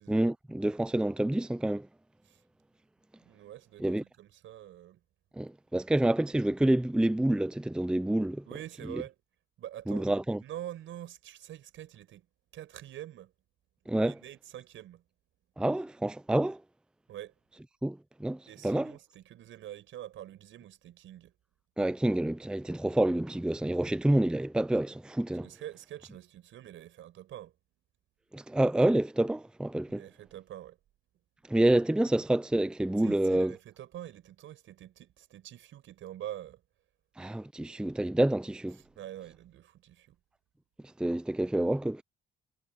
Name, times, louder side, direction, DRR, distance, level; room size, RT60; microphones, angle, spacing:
voice 1, 0.1-1.9 3.8-4.0 5.4-8.4 9.9-10.4 13.9-14.1 15.6-16.6 17.8-18.9 21.8-25.5 28.3-30.0 31.5-33.5 37.2-38.8 41.0-42.0, right 1 dB, 5° right, 0.5 m, -28 dB
voice 2, 3.2-5.0 8.5-9.2 9.6-10.1 10.4-12.3 12.5-13.3 14.0-15.0 17.1-17.3 18.5-21.3 25.4-27.6 29.9-30.8 31.9-32.0 33.0-36.6 38.9-40.2, right 12 dB, 80° right, 6.5 m, -45 dB
cardioid pair, 90°, 20 cm